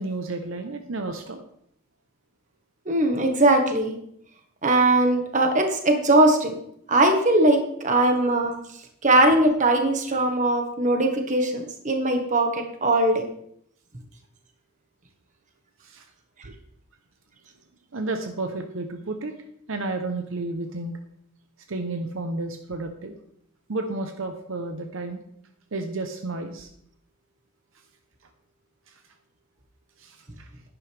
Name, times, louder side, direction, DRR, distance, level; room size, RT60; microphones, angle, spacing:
voice 1, 0.0-1.4 15.8-16.1 16.4-16.5 17.9-19.3 19.7-21.0 21.7-23.1 23.7-25.2 25.7-26.7 28.9-29.0 30.0-30.5, right 2 dB, 65° right, 5 dB, 0.9 m, -31 dB
voice 2, 2.8-4.0 4.6-6.5 6.9-8.5 9.0-13.2, right 2 dB, 35° right, 4 dB, 1.5 m, -20 dB
10.5 x 10.5 x 3.5 m, 0.71 s
head